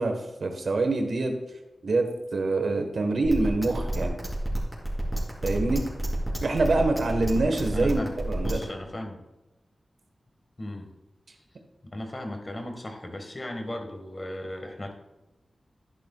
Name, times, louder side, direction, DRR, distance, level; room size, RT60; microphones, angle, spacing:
voice 1, 0.0-1.3 1.8-2.1 2.3-4.2 5.4-5.9 6.4-8.6, right 2 dB, 75° right, 5 dB, 1.3 m, -25 dB
sound 1, 3.2-8.6, right 1 dB, 10° right, 3.2 m, -29 dB
voice 2, 7.7-8.1 8.4-9.2 10.6-10.9 11.8-14.9, left 1 dB, 30° left, 4 dB, 1.5 m, -36 dB
12.0 x 10.5 x 2.4 m, 0.98 s
wide cardioid pair, 110°, 0 cm